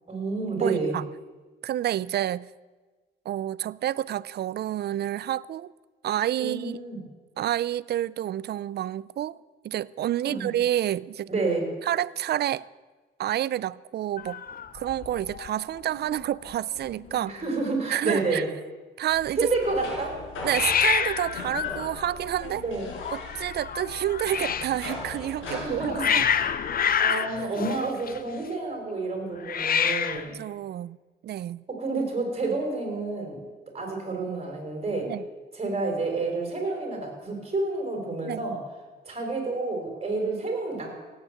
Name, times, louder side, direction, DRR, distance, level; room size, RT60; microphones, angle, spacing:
voice 1, 0.1-1.0 6.4-7.0 10.2-10.5 11.3-11.7 17.3-18.5 19.4-20.2 22.6-22.9 25.4-26.0 27.0-30.4 31.7-33.4 33.7-35.1 35.5-38.6 39.1-41.0, right 3 dB, 30° right, 5.4 m, -29 dB
voice 2, 0.6-1.1 1.6-2.5 3.3-5.7 6.0-6.8 7.4-9.4 9.6-11.3 11.8-12.7 13.2-14.4 14.7-17.4 17.9-18.4 19.0-19.5 20.4-22.6 23.1-26.2 27.1-27.6 30.3-31.0 31.2-31.6 35.1-35.2 38.2-38.4, right 12 dB, 55° right, 0.5 m, -29 dB
Hiss, 14.2-15.5 15.8-16.2 16.5-16.6 16.8-17.5 20.5-24.8 25.5-28.5 29.4-30.3, left 8 dB, 50° left, 0.8 m, -28 dB
sound 1, 19.1-26.8, left 2 dB, 85° left, 5.3 m, -39 dB
17.0 x 8.9 x 7.8 m
cardioid pair, 90°, 20 cm